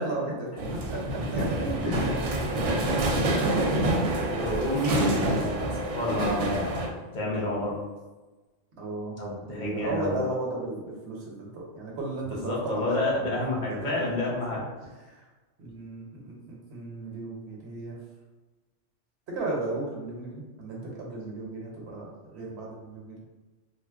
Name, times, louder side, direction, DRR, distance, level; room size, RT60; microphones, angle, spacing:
voice 1, 0.0-1.9 3.3-4.6 8.7-9.1 9.4-14.5 15.1-15.2 15.6-18.0 19.3-23.1, right 2 dB, 60° right, -2 dB, 1.0 m, -35 dB
sound 1, 0.6-6.9, right 1 dB, 85° right, 1.0 m, -27 dB
voice 2, 1.8-2.8 4.3-6.9 7.1-7.8 9.2-10.3 12.4-14.6, left 2 dB, 45° left, -5 dB, 0.8 m, -30 dB
2.8 x 2.1 x 3.4 m, 1.2 s
omnidirectional pair, 1.3 m